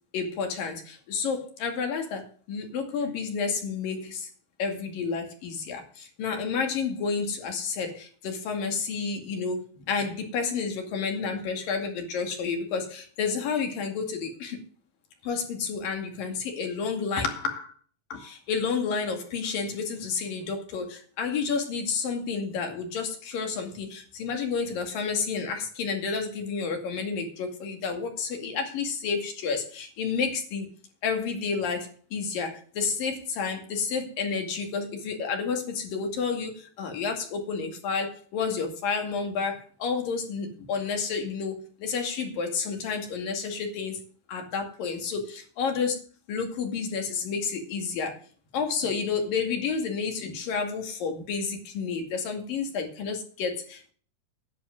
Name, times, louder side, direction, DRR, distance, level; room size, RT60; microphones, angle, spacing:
voice 1, 0.1-4.3 4.6-14.6 15.2-17.7 18.1-30.7 31.0-44.0 44.3-46.0 46.3-48.2 48.5-53.9, left 5 dB, 80° left, 4 dB, 4.1 m, -30 dB
10.5 x 7.5 x 9.3 m, 0.43 s
omnidirectional pair, 3.9 m